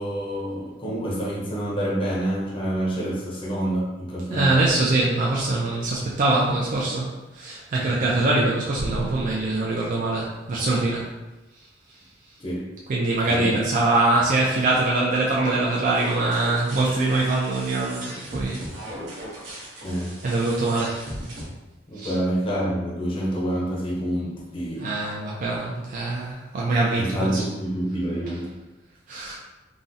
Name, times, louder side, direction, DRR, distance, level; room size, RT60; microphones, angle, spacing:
voice 1, 0.0-4.6 12.4-12.8 13.2-13.6 19.8-20.2 21.9-25.0 26.9-28.6, right 1 dB, 30° left, -5 dB, 0.6 m, -27 dB
voice 2, 4.3-7.1 7.3-11.1 12.9-18.6 20.2-21.0 22.0-22.1 24.8-27.4 29.1-29.4, right 2 dB, 45° right, -4 dB, 0.4 m, -23 dB
sound 1, 15.9-21.4, right 1 dB, 85° right, 0.9 m, -37 dB
3.7 x 2.0 x 2.6 m, 1.0 s
head